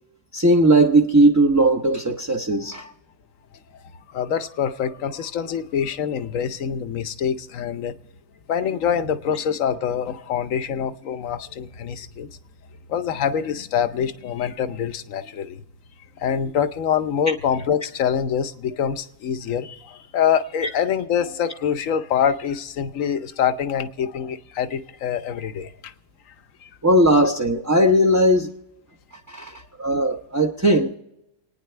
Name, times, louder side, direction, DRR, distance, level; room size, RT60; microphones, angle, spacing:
voice 1, 0.3-2.9 20.6-20.7 26.8-28.5 29.3-30.9, right 1 dB, 20° right, 0.5 m, -18 dB
voice 2, 4.1-7.9 8.5-12.3 12.9-15.6 16.2-25.9 26.6-26.7, left 8 dB, 70° left, 1.1 m, -25 dB
29.0 x 9.7 x 3.3 m
omnidirectional pair, 1.4 m